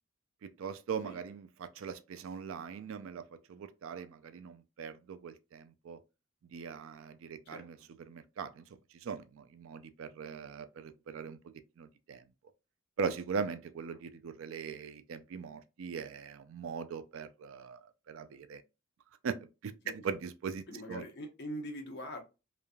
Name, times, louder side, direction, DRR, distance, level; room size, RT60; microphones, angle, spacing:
voice 1, 0.4-3.2 3.5-6.0 6.5-8.6 9.0-11.4 11.8-12.2 13.0-18.6 19.2-21.0, right 6 dB, 65° right, 0.3 m, -40 dB
voice 2, 20.7-22.2, equal, 55° left, 0.8 m, -42 dB
3.1 x 2.5 x 2.2 m
head